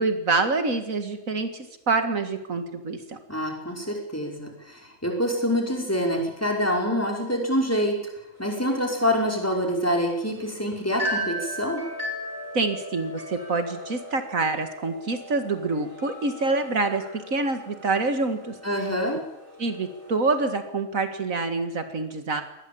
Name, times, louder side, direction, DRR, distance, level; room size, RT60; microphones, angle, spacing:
voice 1, 0.0-3.2 12.5-18.6 19.6-22.4, right 3 dB, 75° right, 8 dB, 2.4 m, -26 dB
voice 2, 3.3-8.0 8.4-11.8 18.6-19.2, equal, 10° left, 1 dB, 5.1 m, -26 dB
sound 1, 8.4-20.5, equal, 55° right, 5.2 m, -37 dB
24.0 x 19.0 x 8.7 m, 0.85 s
omnidirectional pair, 1.4 m